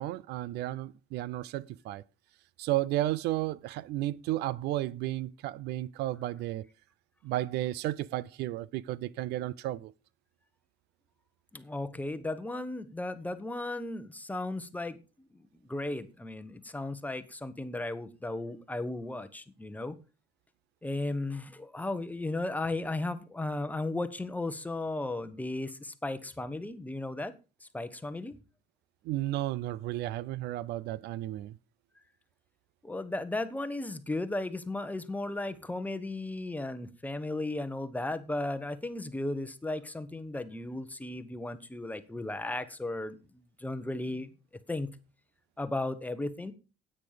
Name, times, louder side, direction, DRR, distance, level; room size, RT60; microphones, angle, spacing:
voice 1, 0.0-2.0 2.6-6.7 7.2-9.9 29.0-31.6, right 15 dB, 85° right, 0.5 m, -33 dB
voice 2, 11.5-20.0 20.8-27.3 27.6-28.4 32.8-43.2 43.6-44.3 44.7-44.9 45.6-46.5, left 2 dB, 10° left, 1.1 m, -35 dB
9.8 x 8.9 x 5.0 m
cardioid pair, 110°, 17 cm